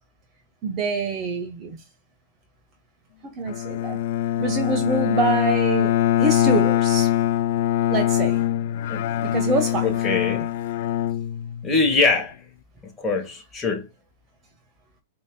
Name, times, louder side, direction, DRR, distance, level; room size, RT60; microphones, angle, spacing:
voice 1, 0.6-1.8 3.2-4.0 4.4-7.1 7.9-8.4 9.2-9.9, right 3 dB, 30° right, 1.4 m, -25 dB
Bowed string instrument, 3.5-11.9, left 13 dB, 60° left, 0.4 m, -23 dB
voice 2, 9.8-10.5 11.6-12.3 12.8-13.9, left 3 dB, 15° left, 1.7 m, -23 dB
4.9 x 3.9 x 2.3 m
hypercardioid pair, 125°, 0 cm